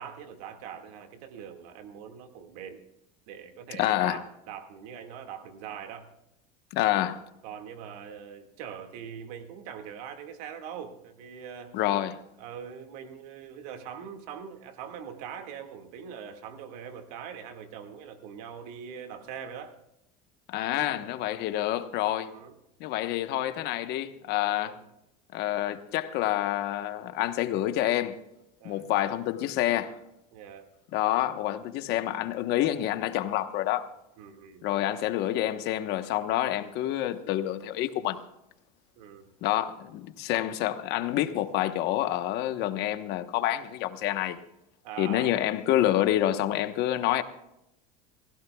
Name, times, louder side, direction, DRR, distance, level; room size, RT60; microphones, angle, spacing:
voice 1, 0.0-2.8 3.3-6.1 7.4-11.8 12.4-19.7 20.7-21.0 22.3-22.6 24.5-24.8 28.6-28.9 30.3-30.7 34.2-34.7 39.0-39.3 44.8-45.4, right 8 dB, 80° right, 2.0 m, -42 dB
voice 2, 3.8-4.2 6.7-7.2 11.7-12.2 20.5-22.3 22.8-24.8 25.3-28.2 28.6-29.9 30.9-33.9 34.6-38.2 39.4-44.4 45.0-47.2, left 13 dB, 60° left, 1.2 m, -28 dB
28.5 x 16.0 x 2.3 m
supercardioid pair, 130°, 20 cm